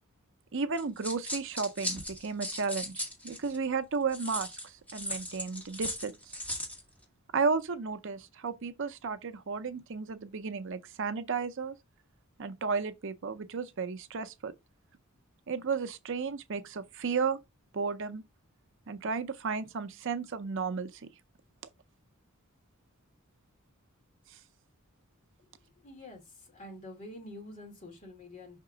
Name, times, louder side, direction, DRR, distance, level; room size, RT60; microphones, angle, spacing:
voice 1, 0.5-6.4 7.3-11.7 12.4-14.5 15.5-17.4 17.7-18.2 18.9-21.1 24.3-24.4, right 5 dB, 60° right, 0.6 m, -33 dB
sound 1, 0.8-3.6 4.1-6.8, equal, 5° left, 2.2 m, -37 dB
voice 2, 25.8-28.6, left 1 dB, 35° left, 2.6 m, -47 dB
5.7 x 3.6 x 4.9 m
head